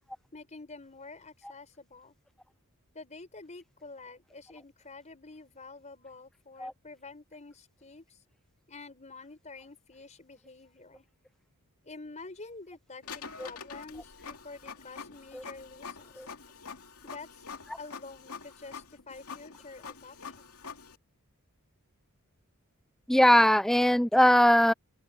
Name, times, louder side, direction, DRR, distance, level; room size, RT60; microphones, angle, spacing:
voice 1, 0.3-2.2 2.9-8.2 8.7-11.1 11.8-16.3 17.0-17.4 17.8-20.6, left 3 dB, 30° left, 5.1 m, -48 dB
Printer, 13.0-21.0, left 5 dB, 90° left, 2.6 m, -45 dB
voice 2, 23.1-24.7, equal, ahead, 0.4 m, -20 dB
open air
head